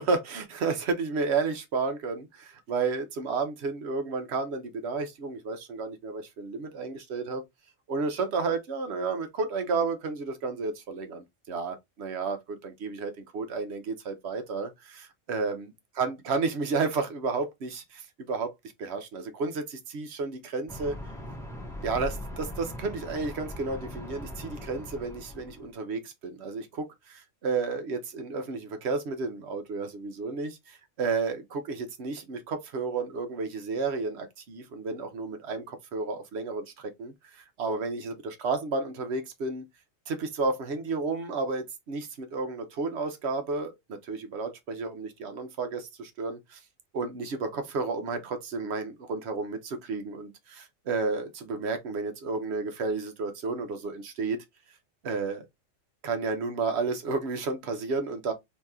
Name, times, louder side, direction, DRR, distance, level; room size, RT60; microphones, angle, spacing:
voice 1, 0.0-7.4 7.9-15.7 16.0-18.5 18.8-21.0 21.8-39.7 40.1-46.6 46.9-54.4 55.0-55.5 56.0-58.3, right 4 dB, 60° right, 1.0 m, -32 dB
sound 1, 20.7-25.7, left 1 dB, 5° left, 0.7 m, -40 dB
2.9 x 2.7 x 3.5 m
omnidirectional pair, 1.3 m